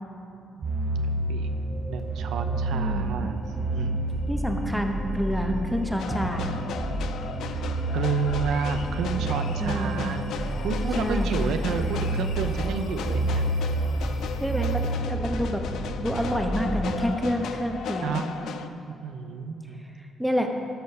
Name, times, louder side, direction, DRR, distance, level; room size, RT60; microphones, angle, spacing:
sound 1, 0.6-17.1, right 2 dB, 40° right, 1.0 m, -29 dB
sound 2, 1.3-15.2, right 2 dB, 35° left, 2.1 m, -46 dB
voice 1, 1.9-4.0 7.9-10.3 10.6-13.5 18.0-18.3 19.0-19.8, right 5 dB, 80° right, 7 dB, 0.5 m, -30 dB
voice 2, 2.7-3.1 4.3-6.5 9.6-10.0 11.0-11.3 14.4-15.6 16.0-18.3 19.8-20.5, equal, ahead, 3 dB, 1.0 m, -28 dB
sound 3, 6.0-18.7, left 6 dB, 75° left, 0.5 m, -37 dB
12.0 x 4.4 x 6.5 m, 2.7 s
cardioid pair, 90°, 0 cm